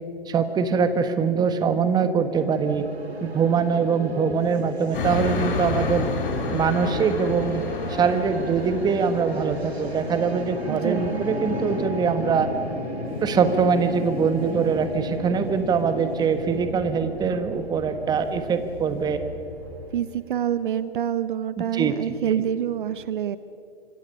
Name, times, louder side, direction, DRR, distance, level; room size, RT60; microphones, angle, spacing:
voice 1, 0.3-2.9 3.2-6.1 6.5-12.5 13.2-19.2 21.6-21.9, right 6 dB, 15° right, 9 dB, 1.3 m, -23 dB
sound 1, 2.3-20.5, right 2 dB, 90° right, 2.3 m, -39 dB
sound 2, 4.9-19.2, left 3 dB, 55° left, 3.7 m, -32 dB
voice 2, 10.7-11.2 19.9-23.4, right 10 dB, 55° right, 14 dB, 0.9 m, -27 dB
sound 3, 13.0-19.9, left 3 dB, 30° left, 7.8 m, -42 dB
26.0 x 25.0 x 5.6 m, 2.5 s
figure-of-eight pair, 125°, 31 cm